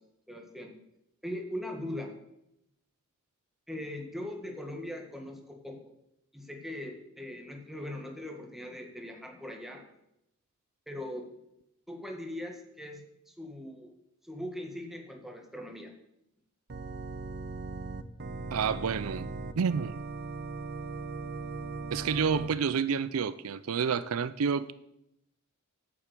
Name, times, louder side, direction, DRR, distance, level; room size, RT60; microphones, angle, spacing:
voice 1, 0.3-0.7 1.2-2.1 3.7-5.8 6.3-9.8 10.9-11.3 11.9-13.9 14.2-15.9, left 1 dB, ahead, 1.8 m, -40 dB
Organ, 16.7-22.5, right 3 dB, 50° right, 0.8 m, -38 dB
voice 2, 18.5-19.3 19.6-20.0 21.9-24.7, right 6 dB, 85° right, 0.5 m, -29 dB
8.5 x 7.6 x 8.4 m
head